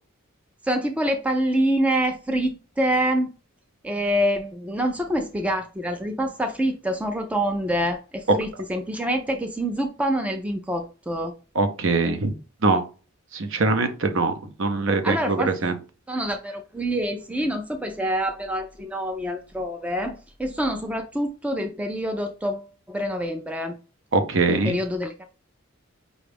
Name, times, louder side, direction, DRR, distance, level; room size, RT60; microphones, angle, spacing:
voice 1, 0.6-3.3 3.8-11.3 15.0-15.5 16.1-23.8 24.5-25.1, equal, 5° right, 0.3 m, -26 dB
voice 2, 11.6-12.3 12.6-12.8 13.3-14.3 14.6-15.7 24.1-24.8, right 3 dB, 65° right, 0.7 m, -22 dB
5.1 x 2.3 x 3.3 m
head